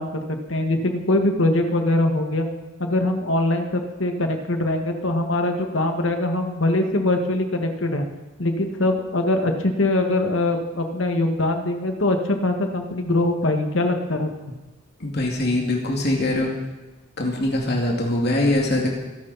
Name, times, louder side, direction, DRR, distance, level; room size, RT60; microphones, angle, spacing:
voice 1, 0.0-2.5 2.8-8.1 8.4-12.2 12.4-14.3, left 1 dB, 80° left, 4 dB, 2.0 m, -22 dB
voice 2, 15.0-16.5 17.2-18.9, left 1 dB, 55° left, 0 dB, 2.5 m, -22 dB
24.5 x 12.0 x 4.3 m, 1.2 s
head